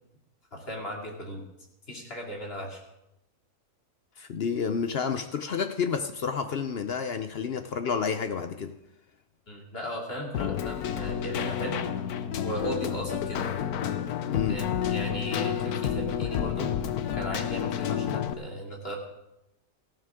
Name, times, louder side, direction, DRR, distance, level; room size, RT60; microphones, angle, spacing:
voice 1, 0.5-1.4 1.9-2.8 9.5-11.8 12.3-13.5 14.5-16.7 17.1-19.0, equal, 40° left, -1 dB, 2.8 m, -36 dB
voice 2, 4.2-8.8 14.3-14.6, left 6 dB, 55° left, 8 dB, 0.7 m, -30 dB
Keyboard (musical), 10.3-18.3, left 9 dB, 75° left, 1.3 m, -30 dB
18.0 x 14.5 x 3.7 m, 0.90 s
omnidirectional pair, 1.7 m